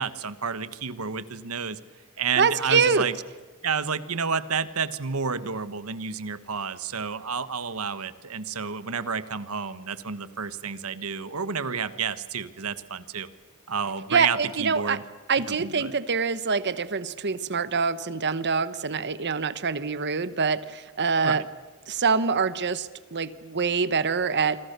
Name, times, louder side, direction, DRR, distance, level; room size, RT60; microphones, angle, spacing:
voice 1, 0.0-1.8 2.2-3.2 3.6-13.3 13.7-15.0 15.5-15.9 21.2-21.4, right 6 dB, 75° right, 14 dB, 1.3 m, -30 dB
voice 2, 2.4-3.1 14.1-15.0 15.3-21.4 21.9-24.6, right 5 dB, 50° right, 14 dB, 1.2 m, -25 dB
27.0 x 25.0 x 6.8 m, 1.3 s
head